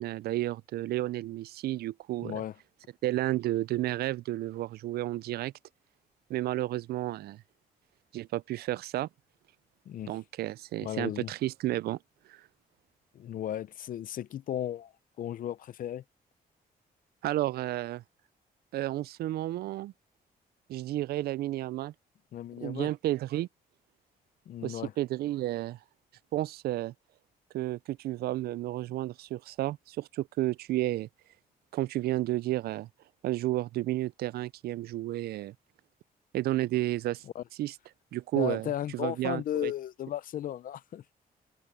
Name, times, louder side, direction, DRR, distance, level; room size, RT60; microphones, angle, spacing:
voice 1, 0.0-2.4 3.0-5.5 6.3-7.4 8.1-9.1 10.1-12.0 12.3-12.4 17.2-18.0 18.7-19.9 20.7-21.9 22.6-23.5 24.6-25.8 26.3-26.9 27.5-31.1 31.7-32.9 33.2-35.5 36.3-37.2 37.6-37.7 38.1-39.7, right 15 dB, 90° right, 0.4 m, -32 dB
voice 2, 2.2-2.5 9.9-10.2 10.8-11.3 13.1-14.9 15.2-16.0 22.3-22.9 24.5-24.9 37.3-37.4 38.4-41.0, left 11 dB, 60° left, 0.6 m, -35 dB
cardioid pair, 125°, 16 cm